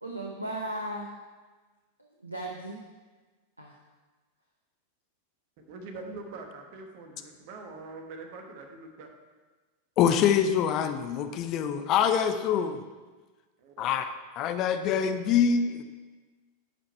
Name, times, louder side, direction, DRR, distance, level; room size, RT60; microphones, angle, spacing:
voice 1, 0.0-1.1 2.0-2.8 3.6-3.8, right 1 dB, 85° right, 0 dB, 0.8 m, -36 dB
voice 2, 5.6-9.1 13.6-14.0, right 3 dB, 45° right, 4 dB, 1.3 m, -43 dB
voice 3, 10.0-12.8 13.8-14.0 14.4-15.8, left 8 dB, 35° left, 9 dB, 0.6 m, -25 dB
10.5 x 5.0 x 4.5 m, 1.3 s
figure-of-eight pair, 90°, 0 cm